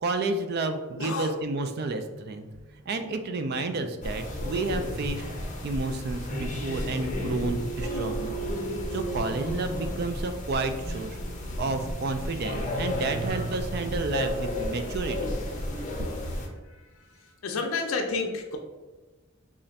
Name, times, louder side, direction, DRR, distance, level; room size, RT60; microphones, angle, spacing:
voice 1, 0.0-2.5 2.9-5.2 5.6-8.4 8.9-11.2 11.6-15.4, right 3 dB, 50° right, 8 dB, 0.3 m, -31 dB
voice 2, 1.0-1.3 17.4-18.6, left 4 dB, 85° left, 3 dB, 0.4 m, -29 dB
sound 1, 1.7-9.9, right 8 dB, 80° right, 0.7 m, -43 dB
sound 2, 4.0-16.5, left 1 dB, 40° left, 0.6 m, -33 dB
3.2 x 2.5 x 4.0 m, 1.2 s
head